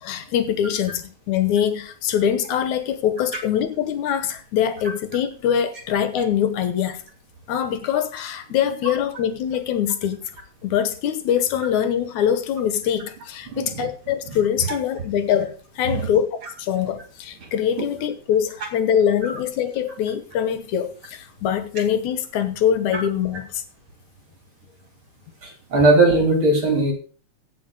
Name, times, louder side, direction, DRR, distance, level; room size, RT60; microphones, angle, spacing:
voice 1, 0.0-7.0 7.5-10.2 10.6-16.3 16.6-23.6, left 9 dB, 75° left, 10 dB, 2.4 m, -23 dB
voice 2, 25.7-26.9, right 2 dB, 40° right, 2 dB, 3.8 m, -17 dB
16.0 x 6.2 x 5.3 m, 0.41 s
omnidirectional pair, 3.5 m